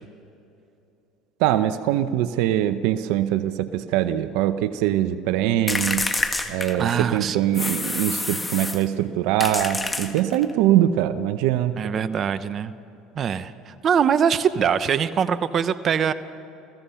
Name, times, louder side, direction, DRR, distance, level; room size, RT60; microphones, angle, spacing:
voice 1, 1.4-6.1 6.5-11.8, right 12 dB, 75° right, 12 dB, 0.8 m, -22 dB
sound 1, 5.7-7.1 7.5-8.9 9.4-10.5, left 2 dB, 15° left, 1.6 m, -27 dB
voice 2, 6.7-7.4 11.8-12.7 13.1-16.1, right 7 dB, 45° right, 13 dB, 0.9 m, -23 dB
29.0 x 16.0 x 5.8 m, 2.8 s
supercardioid pair, 95°, 0 cm